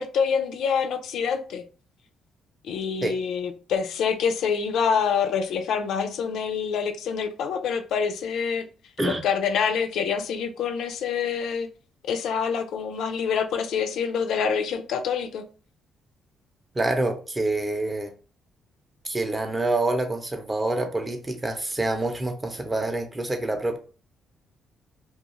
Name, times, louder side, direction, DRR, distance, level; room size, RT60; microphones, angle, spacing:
voice 1, 0.0-1.6 2.6-8.7 9.0-11.7 12.0-15.5, left 6 dB, 75° left, 0.3 m, -26 dB
voice 2, 16.7-18.1 19.0-23.8, right 2 dB, 20° right, 0.6 m, -26 dB
2.3 x 2.3 x 2.9 m
cardioid pair, 90°, 0 cm